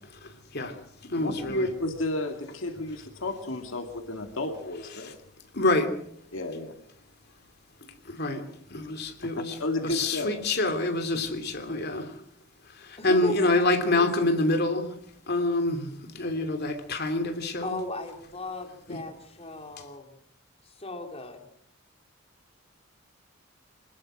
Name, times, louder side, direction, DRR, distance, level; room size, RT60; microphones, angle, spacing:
voice 1, 0.2-0.8 1.1-1.7 5.0-5.1 5.5-6.0 7.8-9.6 9.8-12.2 12.6-15.0 15.3-17.8 18.9-19.0 19.8-19.9, left 2 dB, 50° left, 7 dB, 3.1 m, -27 dB
voice 2, 1.2-5.2 6.3-6.8 9.2-9.3 9.6-10.4, left 2 dB, 65° left, 5 dB, 2.4 m, -32 dB
voice 3, 13.0-13.6 13.9-14.1 17.6-20.2 20.8-21.4, left 2 dB, 30° left, 3 dB, 3.0 m, -36 dB
26.0 x 19.5 x 6.3 m, 0.67 s
head